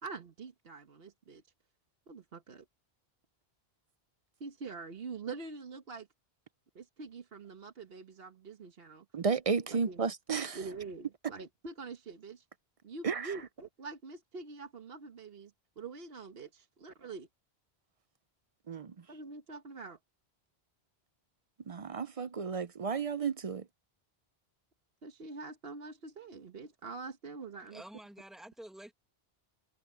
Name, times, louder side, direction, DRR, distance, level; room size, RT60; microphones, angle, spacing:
voice 1, 0.0-1.4 2.1-2.6 4.4-6.1 6.7-9.0 9.7-10.1 10.5-12.4 12.8-17.3 19.1-20.0 25.0-27.8, right 4 dB, 70° right, 1.4 m, -45 dB
voice 2, 9.1-10.6 13.0-13.3 18.7-18.9 21.7-23.6, right 5 dB, 45° right, 0.5 m, -33 dB
voice 3, 27.7-28.9, right 1 dB, ahead, 1.6 m, -49 dB
omnidirectional pair, 1.1 m